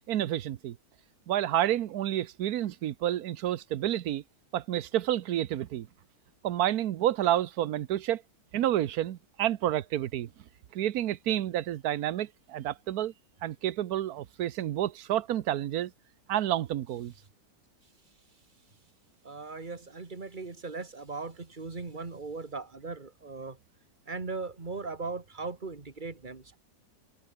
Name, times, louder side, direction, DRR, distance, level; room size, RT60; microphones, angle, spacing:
voice 1, 0.1-0.8 1.3-4.2 4.5-5.9 6.4-8.2 8.5-10.3 10.7-13.1 13.4-15.9 16.3-17.1, right 12 dB, 65° right, 1.2 m, -29 dB
voice 2, 19.2-23.6 24.1-26.6, right 4 dB, 25° right, 2.0 m, -38 dB
omnidirectional pair, 2.0 m